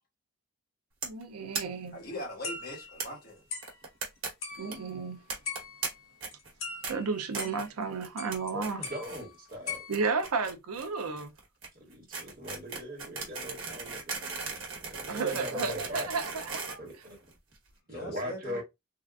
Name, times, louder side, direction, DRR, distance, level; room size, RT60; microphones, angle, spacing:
sound 1, 1.0-1.2 1.5-1.6 1.9-2.0 2.2-2.3 3.0-3.1 3.6-4.3 4.5-4.7 5.3-5.9 6.2-6.5 6.8-6.9 7.3-7.7 8.0-8.4 8.6-9.2 9.5-17.5, right 4 dB, 65° right, 1.2 m, -37 dB
voice 1, 1.0-2.0 4.6-5.2 6.9-8.8 9.9-11.3 15.1-16.8, right 4 dB, 90° right, 0.6 m, -33 dB
voice 2, 1.9-3.4 17.9-18.6, left 1 dB, 45° left, 1.4 m, -41 dB
sound 2, 2.4-3.2 3.5-3.8 4.4-5.0 5.5-6.1 6.3-7.8 8.2-8.5 8.8-10.2, left 5 dB, 65° left, 1.5 m, -41 dB
voice 3, 8.5-9.8 11.8-16.1 16.8-17.2 17.9-18.6, equal, 40° right, 1.4 m, -40 dB
3.5 x 2.5 x 2.4 m
head